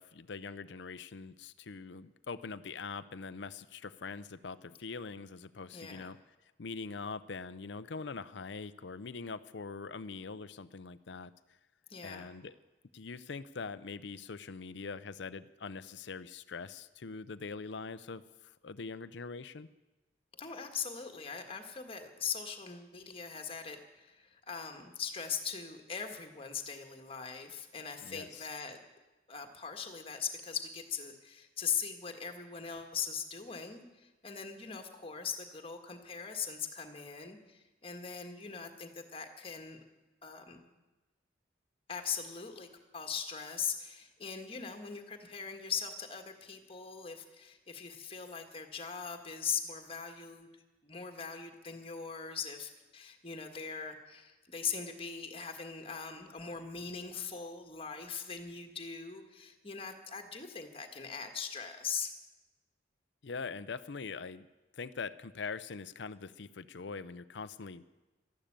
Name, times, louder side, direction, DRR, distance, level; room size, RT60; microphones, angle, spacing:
voice 1, 0.0-6.2 6.6-11.3 12.0-12.5 12.9-19.7 28.0-28.5 63.2-64.5 64.7-67.8, left 4 dB, 65° left, 13 dB, 0.6 m, -43 dB
voice 2, 5.7-6.1 11.9-12.3 20.4-28.8 29.3-39.8 40.2-40.6 41.9-42.7 42.9-50.5 50.8-62.1, left 6 dB, 30° left, 5 dB, 1.7 m, -40 dB
13.0 x 12.0 x 8.8 m, 1.1 s
head